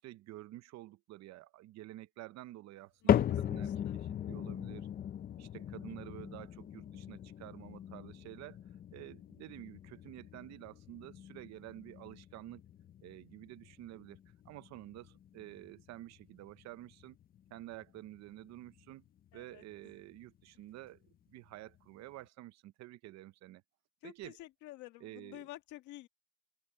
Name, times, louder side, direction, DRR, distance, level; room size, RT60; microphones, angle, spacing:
voice 1, 0.0-4.9 5.4-8.6 8.9-12.6 13.0-14.2 14.4-17.2 17.5-19.0 19.3-21.0 21.3-23.6 24.0-24.4 25.0-25.4, right 16 dB, 65° right, 0.7 m, -50 dB
voice 2, 3.0-4.0 5.8-5.9 19.3-19.9 24.0-26.1, left 16 dB, 85° left, 1.8 m, -51 dB
sound 1, 3.1-19.4 19.7-20.2 20.8-20.9 21.8-21.9, left 10 dB, 30° left, 0.4 m, -38 dB
open air
cardioid pair, 145°, 29 cm